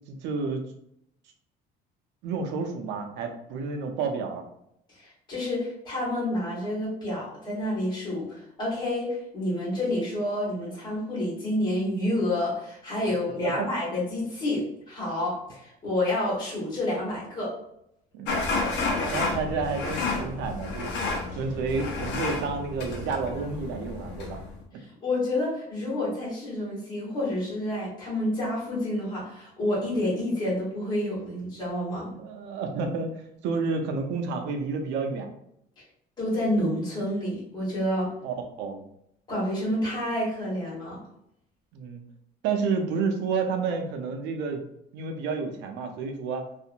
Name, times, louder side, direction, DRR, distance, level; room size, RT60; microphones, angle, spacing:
voice 1, 0.1-0.6 2.2-4.4 13.4-13.7 18.1-18.3 19.1-20.9 21.4-24.4 32.2-35.3 38.2-38.9 41.7-42.0 42.4-44.6 44.9-46.4, right 4 dB, 90° right, 4 dB, 0.6 m, -30 dB
voice 2, 4.9-17.5 24.8-32.1 36.2-38.1 39.3-41.0, left 1 dB, 25° left, -7 dB, 1.4 m, -29 dB
sound 1, 18.3-24.6, left 3 dB, 90° left, 0.7 m, -31 dB
2.8 x 2.4 x 2.5 m, 0.76 s
cardioid pair, 155°, 18 cm